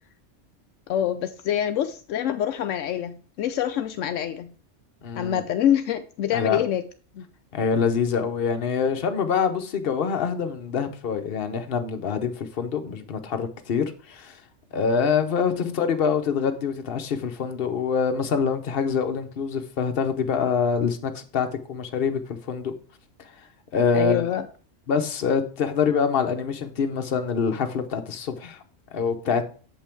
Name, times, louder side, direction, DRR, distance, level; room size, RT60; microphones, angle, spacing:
voice 1, 0.9-4.5 5.2-6.8 7.1-7.2 15.5-15.8 23.9-24.5, left 10 dB, 80° left, 0.9 m, -26 dB
voice 2, 5.0-5.4 6.3-6.6 7.5-14.4 14.7-22.7 23.7-24.2 24.9-28.6 28.9-29.4, left 6 dB, 50° left, 1.0 m, -25 dB
7.6 x 5.5 x 4.4 m
omnidirectional pair, 1.3 m